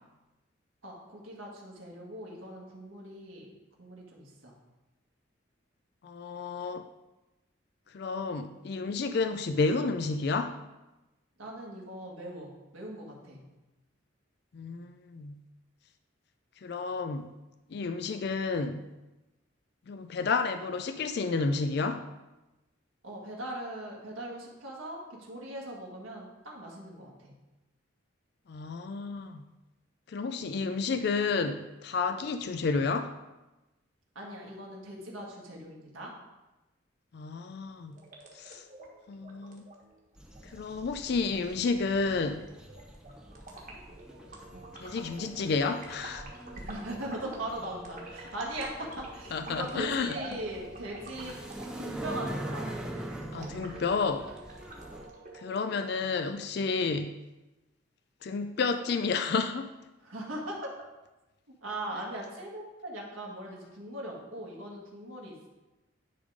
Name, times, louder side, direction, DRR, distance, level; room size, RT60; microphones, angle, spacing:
voice 1, 0.8-3.5 3.8-4.5 11.4-13.4 23.0-27.3 34.2-36.1 44.5-44.6 46.5-51.4 51.8-52.7 53.3-53.5 60.0-60.7 61.6-65.5, right 1 dB, 85° right, -3 dB, 1.8 m, -40 dB
voice 2, 6.0-6.8 7.9-10.6 14.5-15.4 16.6-17.3 17.7-18.8 19.9-22.0 28.5-29.4 30.1-33.1 37.1-38.0 38.4-38.6 39.1-39.6 40.4-42.4 44.8-46.3 49.3-50.2 53.3-54.3 55.3-57.2 58.2-59.7, left 4 dB, 55° left, 8 dB, 0.4 m, -31 dB
sound 1, 37.9-55.9, right 2 dB, 40° right, 1.4 m, -48 dB
sound 2, 40.2-55.1, right 1 dB, 5° right, 0.5 m, -44 dB
10.5 x 3.7 x 5.0 m, 1.0 s
head